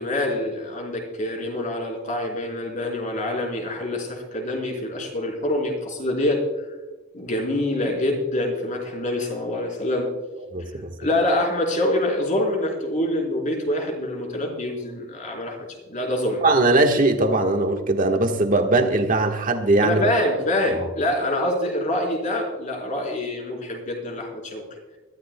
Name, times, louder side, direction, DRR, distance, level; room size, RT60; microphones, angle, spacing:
voice 1, 0.0-6.4 7.1-10.1 11.0-15.6 15.9-16.4 19.8-24.6, left 1 dB, 40° left, 4.1 m, -25 dB
voice 2, 10.5-10.9 16.4-20.0 20.7-20.9, right 2 dB, 45° right, 1.5 m, -20 dB
23.0 x 13.5 x 2.3 m
head